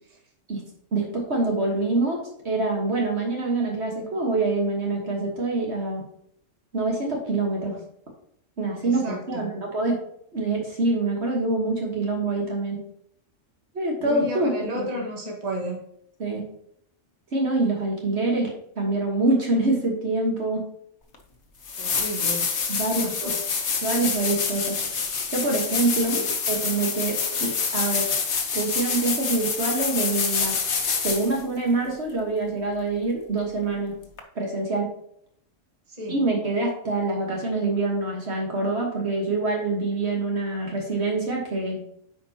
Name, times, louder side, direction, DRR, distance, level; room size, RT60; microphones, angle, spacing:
voice 1, 0.9-6.0 6.7-7.8 8.6-9.9 10.3-12.8 13.7-14.9 16.2-16.4 17.3-20.6 22.7-23.3 23.8-24.8 25.3-28.1 28.5-30.6 31.0-33.9 34.3-34.9 36.1-41.8, right 2 dB, 60° right, -1 dB, 1.7 m, -25 dB
voice 2, 8.8-9.6 14.0-15.8 21.8-22.5 23.0-23.3 26.1-26.3 35.9-36.2, equal, 30° right, -1 dB, 1.6 m, -33 dB
sound 1, 21.1-21.2 21.6-31.4 34.2-34.3, left 5 dB, 65° left, 1.3 m, -27 dB
9.1 x 5.0 x 2.8 m, 0.69 s
omnidirectional pair, 1.3 m